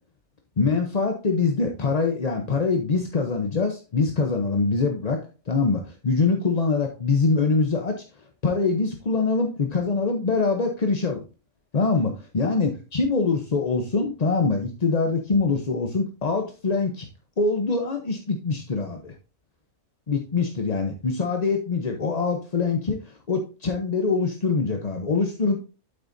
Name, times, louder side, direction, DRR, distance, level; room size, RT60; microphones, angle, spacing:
voice 1, 0.6-5.2 5.5-8.0 8.4-11.2 11.7-17.1 17.4-19.1 20.1-25.6, left 4 dB, 35° left, 4 dB, 0.7 m, -24 dB
8.7 x 8.2 x 2.6 m, 0.33 s
omnidirectional pair, 1.6 m